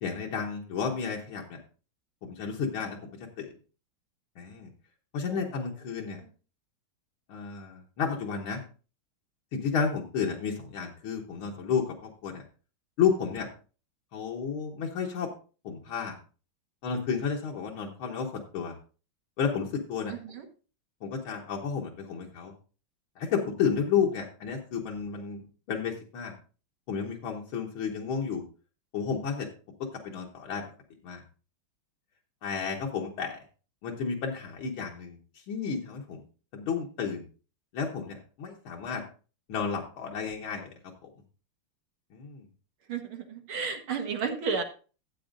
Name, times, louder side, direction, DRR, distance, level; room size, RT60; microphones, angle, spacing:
voice 1, 0.0-1.6 2.2-3.0 3.4-3.5 4.4-4.7 5.1-6.2 7.3-8.6 9.5-12.4 13.0-13.5 14.1-15.3 15.6-16.2 16.8-18.7 19.4-20.1 21.0-22.5 23.2-25.4 25.7-26.3 26.9-28.4 28.9-29.5 29.8-30.6 31.0-31.2 32.4-33.4 33.8-35.2 35.5-36.2 36.5-37.2 37.7-39.0 39.5-40.7 41.0-41.1 42.1-42.5, left 6 dB, 85° left, -1 dB, 1.9 m, -31 dB
voice 2, 20.1-20.5 42.9-44.6, right 5 dB, 85° right, 4 dB, 2.2 m, -33 dB
14.0 x 8.1 x 2.6 m, 0.36 s
omnidirectional pair, 2.2 m